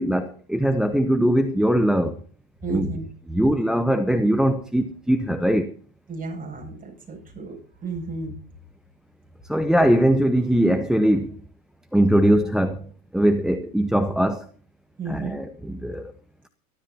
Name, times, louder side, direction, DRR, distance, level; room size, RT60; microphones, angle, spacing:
voice 1, 0.0-2.2 2.7-2.9 3.3-5.7 9.5-11.4 11.9-12.9 13.1-14.5 15.1-16.1, right 1 dB, ahead, 0.9 m, -21 dB
voice 2, 2.6-3.0 3.4-3.5 6.1-7.6 7.8-8.3 15.0-15.4, right 3 dB, 20° right, 7.9 m, -32 dB
25.0 x 13.0 x 2.9 m
hypercardioid pair, 100°, 45 cm